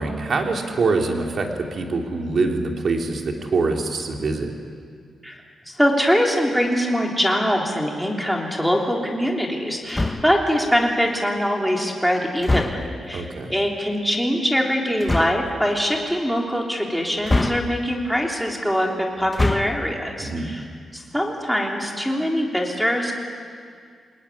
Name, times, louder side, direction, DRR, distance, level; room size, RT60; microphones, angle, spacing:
voice 1, 0.0-4.5 13.1-13.5 20.2-20.6, right 3 dB, 50° right, 2 dB, 3.0 m, -24 dB
voice 2, 5.2-20.7 20.9-23.1, equal, ahead, 0 dB, 3.4 m, -23 dB
sound 1, 9.9-10.5 12.4-13.0 15.0-15.5 17.2-18.0 19.2-19.9, left 2 dB, 15° left, 1.0 m, -24 dB
28.5 x 19.0 x 9.9 m, 2.1 s
wide cardioid pair, 145°, 0 cm